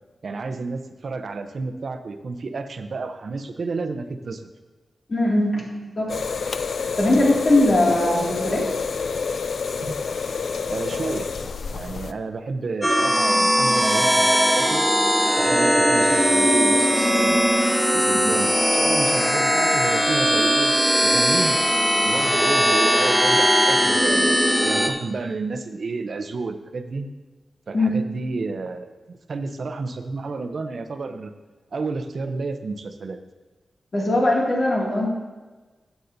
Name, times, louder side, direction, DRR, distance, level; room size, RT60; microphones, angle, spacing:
voice 1, 0.2-4.5 10.7-11.3 11.7-14.8 15.4-17.4 17.9-20.7 21.0-21.7 22.0-27.1 27.7-31.3 31.7-33.2, right 3 dB, 60° right, 8 dB, 0.6 m, -31 dB
voice 2, 5.1-6.1 7.0-8.7 9.8-10.0 18.2-18.3 27.7-27.9 33.9-35.1, left 1 dB, 45° left, -3 dB, 2.3 m, -20 dB
sound 1, 6.1-12.1, left 5 dB, 70° left, 0.3 m, -28 dB
sound 2, 12.8-24.9, equal, ahead, 0.6 m, -19 dB
13.0 x 8.1 x 2.7 m, 1.2 s
wide cardioid pair, 135°, 0 cm